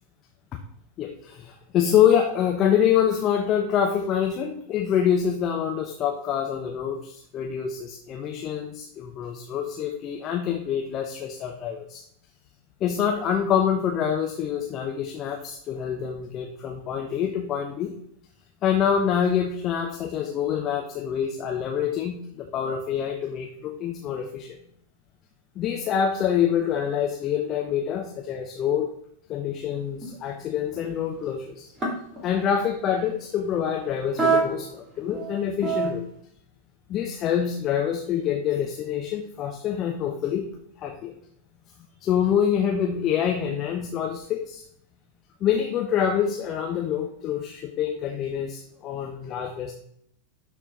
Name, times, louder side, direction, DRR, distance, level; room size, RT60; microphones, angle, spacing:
voice 1, 1.0-12.0 12.8-17.9 18.6-24.6 25.6-28.9 29.3-31.7 32.2-36.1 36.9-40.5 40.8-41.1 42.0-44.6 45.4-49.7, left 8 dB, 35° left, 2 dB, 1.0 m, -26 dB
sound 1, 30.0-30.1 30.7-31.2 31.8-32.2 34.1-34.7 35.0-35.9, right 5 dB, 15° right, 3.1 m, -24 dB
11.5 x 4.4 x 4.1 m, 0.69 s
figure-of-eight pair, 90°, 0 cm